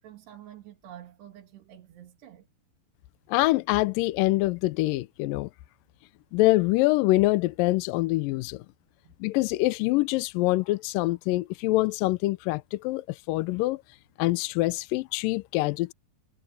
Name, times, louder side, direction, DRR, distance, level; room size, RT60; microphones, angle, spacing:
voice 1, 0.0-2.5 9.0-9.2, right 11 dB, 90° right, 4.5 m, -48 dB
voice 2, 3.3-5.5 6.3-8.6 9.2-13.8 14.2-15.9, left 19 dB, 85° left, 2.0 m, -25 dB
omnidirectional pair, 4.6 m